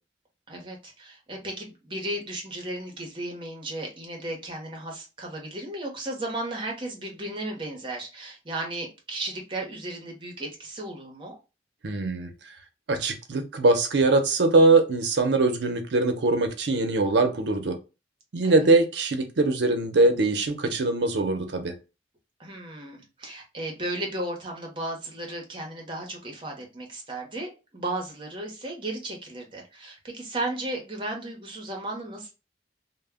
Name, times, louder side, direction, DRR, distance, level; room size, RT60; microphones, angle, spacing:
voice 1, 0.5-11.4 18.4-18.7 22.4-32.3, right 1 dB, 30° right, 0.7 m, -35 dB
voice 2, 11.8-12.3 12.9-17.8 18.3-21.7, right 2 dB, 75° right, 0.6 m, -22 dB
2.1 x 2.1 x 3.4 m
head